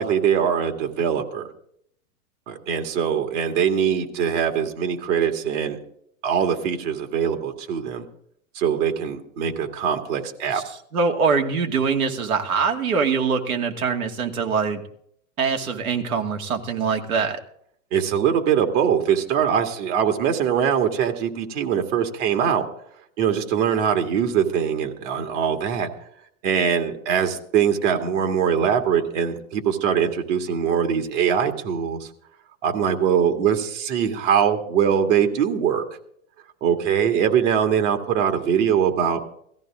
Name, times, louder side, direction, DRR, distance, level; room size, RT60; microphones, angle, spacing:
voice 1, 0.0-1.5 2.5-5.8 6.2-8.0 8.5-10.6 17.9-22.6 23.2-25.9 26.4-32.1 32.6-35.8 36.6-39.2, right 8 dB, 55° right, 5 dB, 2.2 m, -22 dB
voice 2, 10.9-14.8 15.4-17.4, right 5 dB, 80° right, 3 dB, 2.4 m, -23 dB
17.5 x 14.5 x 3.7 m, 0.68 s
hypercardioid pair, 125°, 43 cm